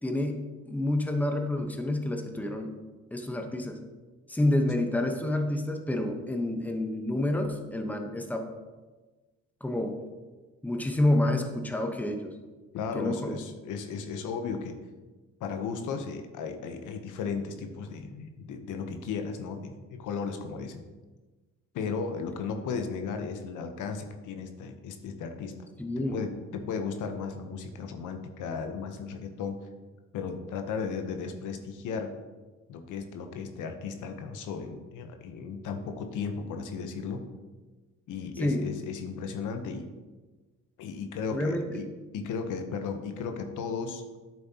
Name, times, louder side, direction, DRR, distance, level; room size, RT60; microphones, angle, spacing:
voice 1, 0.0-2.8 3.1-3.8 4.3-8.5 9.6-10.0 10.6-12.3 12.9-13.4 25.8-26.2 38.4-38.7 41.3-41.8, left 1 dB, 5° left, 4 dB, 0.9 m, -28 dB
voice 2, 12.7-14.8 15.4-20.8 21.7-25.5 26.0-29.6 30.1-32.1 32.7-37.2 38.1-39.9 40.8-41.8 42.1-44.0, left 5 dB, 85° left, 6 dB, 0.9 m, -35 dB
9.2 x 7.6 x 2.8 m, 1.3 s
cardioid pair, 90°, 30 cm